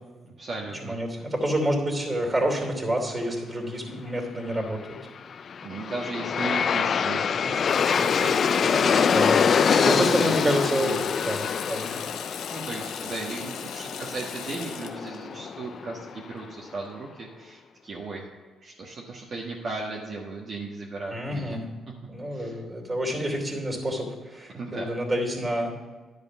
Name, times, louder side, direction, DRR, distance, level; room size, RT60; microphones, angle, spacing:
voice 1, 0.2-1.0 5.6-9.2 9.7-10.4 10.7-11.0 12.5-18.3 18.6-21.6 22.3-22.6 24.5-24.9, right 3 dB, 50° right, -3 dB, 1.5 m, -36 dB
voice 2, 0.8-5.0 8.7-9.4 9.8-12.0 21.1-21.7 22.1-25.7, equal, 20° right, 1 dB, 2.9 m, -28 dB
Aircraft, 5.3-16.4, left 6 dB, 50° left, 0.4 m, -25 dB
Water tap faucet / Sink (filling or washing), 7.5-16.8, left 8 dB, 85° left, 0.8 m, -39 dB
11.0 x 5.0 x 7.0 m, 1.3 s
cardioid pair, 90°, 0 cm